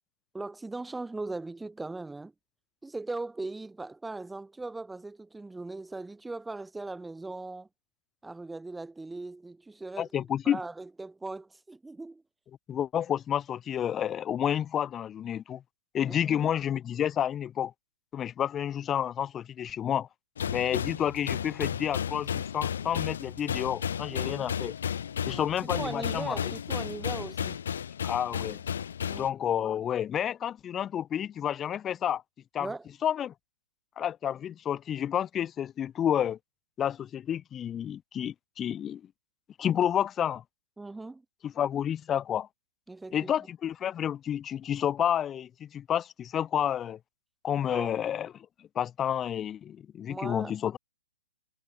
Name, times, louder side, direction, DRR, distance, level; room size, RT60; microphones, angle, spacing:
voice 1, 0.3-2.3 2.8-7.7 8.2-10.1 10.4-12.2 16.1-16.5 24.1-24.5 25.3-27.6 29.0-29.3 32.6-32.9 40.8-41.2 42.9-43.5 47.7-48.0 50.1-50.5, right 2 dB, 5° right, 1.1 m, -39 dB
voice 2, 10.0-10.6 12.7-15.6 15.9-17.7 18.1-20.1 20.5-24.7 25.3-26.4 28.0-28.6 29.1-32.2 32.5-32.7 33.0-33.3 34.0-36.4 36.8-39.0 39.6-40.4 41.4-42.5 43.1-47.0 47.4-48.5 48.8-50.8, left 9 dB, 20° left, 0.6 m, -30 dB
sound 1, 20.4-29.3, left 8 dB, 70° left, 0.8 m, -33 dB
hypercardioid pair, 135°, 0 cm